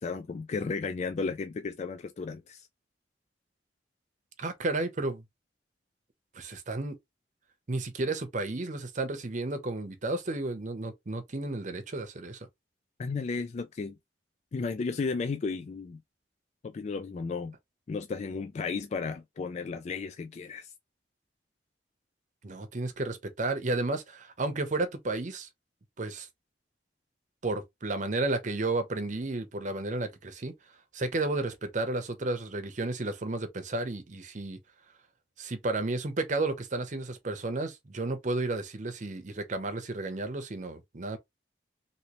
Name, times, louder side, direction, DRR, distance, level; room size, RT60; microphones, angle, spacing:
voice 1, 0.0-2.7 13.0-14.0 14.5-16.0 16.6-17.5 17.9-20.7, left 4 dB, 40° left, 0.3 m, -34 dB
voice 2, 4.4-5.2 6.3-6.9 7.7-12.4 22.4-25.5 26.0-26.3 27.4-30.5 30.9-34.6 35.4-41.2, right 2 dB, 45° right, 0.7 m, -32 dB
3.0 x 2.9 x 2.9 m
head